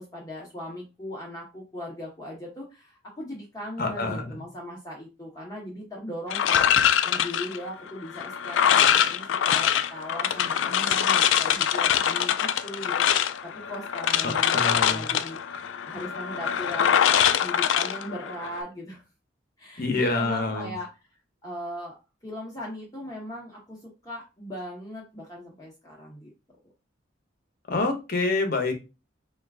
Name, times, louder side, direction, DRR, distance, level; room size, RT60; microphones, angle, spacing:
voice 1, 0.0-19.0 19.6-20.9 21.4-21.9 22.2-26.3, equal, 20° left, -4 dB, 0.9 m, -39 dB
voice 2, 3.8-4.4 14.2-15.1 19.8-20.7 27.7-28.7, left 3 dB, 50° left, 4 dB, 0.9 m, -27 dB
sound 1, 6.3-18.6, left 9 dB, 85° left, 0.4 m, -24 dB
4.5 x 2.4 x 3.4 m, 0.28 s
head